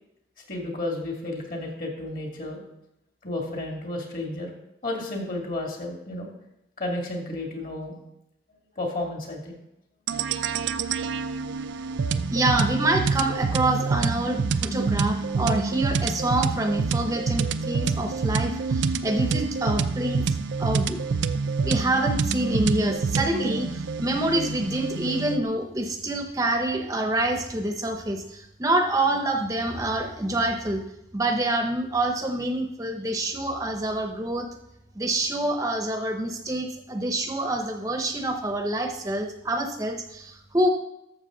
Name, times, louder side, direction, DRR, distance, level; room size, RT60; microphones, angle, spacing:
voice 1, 0.5-2.6 3.2-4.5 4.8-6.3 6.8-8.0 8.8-9.6, left 2 dB, 50° left, 0 dB, 2.3 m, -32 dB
sound 1, 10.1-25.4, right 5 dB, 80° right, 0.4 m, -27 dB
voice 2, 12.3-20.2 20.6-21.0 21.6-30.8 31.1-34.5 34.9-40.7, right 1 dB, 20° right, 5 dB, 0.7 m, -26 dB
12.0 x 7.1 x 3.8 m, 0.84 s
head